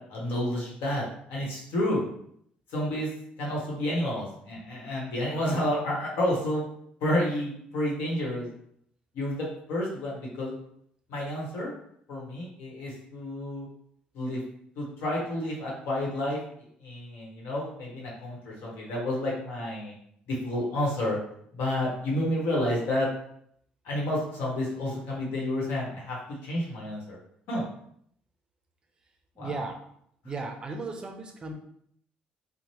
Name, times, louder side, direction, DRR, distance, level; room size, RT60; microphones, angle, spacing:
voice 1, 0.1-1.0 1.3-2.0 2.7-3.1 3.4-6.6 7.0-8.5 9.1-10.6 11.1-11.7 12.1-13.7 14.1-14.4 14.8-16.4 16.8-19.9 20.3-21.2 21.5-23.1 23.8-26.2 26.4-27.2 27.5-27.6 29.4-29.5, left 1 dB, 85° left, -4 dB, 1.1 m, -30 dB
voice 2, 29.4-29.8 30.2-31.5, right 3 dB, 25° right, 3 dB, 0.4 m, -35 dB
2.8 x 2.1 x 3.1 m, 0.68 s
cardioid pair, 135°, 3 cm